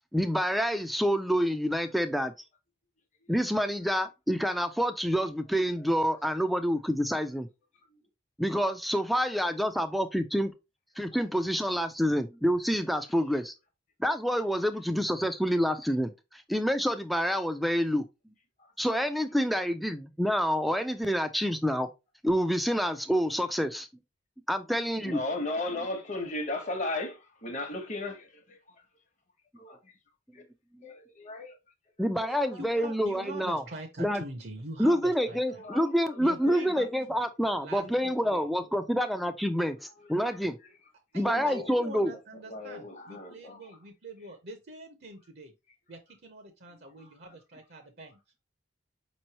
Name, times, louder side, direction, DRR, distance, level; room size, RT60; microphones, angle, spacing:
voice 1, 0.1-2.3 3.3-7.5 8.4-10.5 11.0-13.5 14.0-16.1 16.5-18.1 18.8-21.9 22.2-23.9 24.5-25.2 30.7-30.8 32.0-33.6 34.0-34.2 34.8-40.6 41.1-42.1, equal, ahead, 0.3 m, -27 dB
voice 2, 25.0-28.6 29.6-29.7 30.3-30.4 30.8-31.5 32.2-32.6 35.5-36.2 36.5-36.7 37.8-38.6 40.0-40.4 41.3-41.7 42.5-43.7 47.0-47.1, left 2 dB, 40° left, 0.9 m, -37 dB
voice 3, 32.3-35.6 36.2-36.9 37.6-38.1 41.1-45.5 45.9-48.2, right 1 dB, 55° right, 0.7 m, -44 dB
5.2 x 3.1 x 2.8 m
head